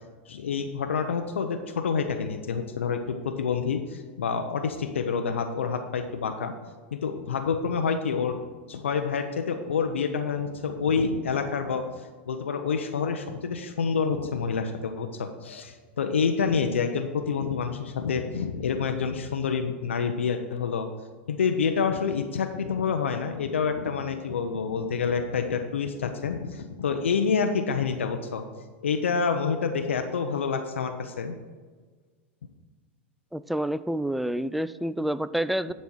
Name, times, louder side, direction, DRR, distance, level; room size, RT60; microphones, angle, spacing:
voice 1, 0.3-6.5 6.9-8.4 8.7-11.9 12.3-20.9 21.3-28.4 28.8-31.4, left 6 dB, 85° left, 6 dB, 0.6 m, -28 dB
voice 2, 33.3-35.7, right 1 dB, ahead, 15 dB, 0.3 m, -28 dB
10.5 x 4.2 x 6.3 m, 1.5 s
hypercardioid pair, 100°, 6 cm